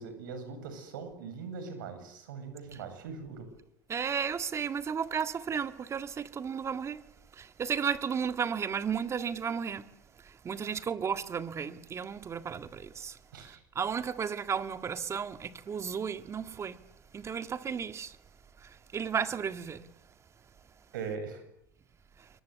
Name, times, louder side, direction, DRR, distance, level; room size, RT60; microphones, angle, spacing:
voice 1, 0.0-3.5 10.6-10.8 13.3-13.6 20.9-21.4, right 5 dB, 85° right, 8.0 m, -41 dB
voice 2, 3.9-7.0 7.4-9.9 10.4-16.8 17.1-18.2 18.6-19.8, right 7 dB, 25° right, 1.8 m, -34 dB
28.0 x 23.0 x 8.2 m
supercardioid pair, 115°, 10 cm